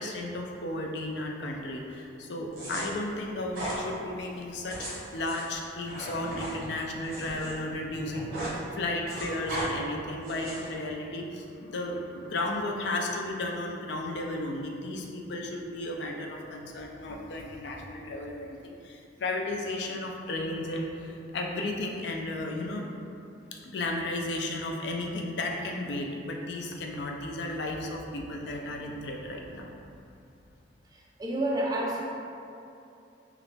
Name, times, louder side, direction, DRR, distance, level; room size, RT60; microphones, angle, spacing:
voice 1, 0.0-22.9 23.5-29.7, left 2 dB, 65° left, 1 dB, 0.4 m, -34 dB
sound 1, 2.5-2.8 3.5-3.8 4.5-7.5 7.8-8.6 8.8-9.7 10.2-10.7, right 1 dB, 55° right, 1.0 m, -37 dB
voice 2, 30.9-32.0, right 1 dB, 20° right, -3 dB, 0.4 m, -30 dB
3.0 x 2.4 x 3.2 m, 2.7 s
head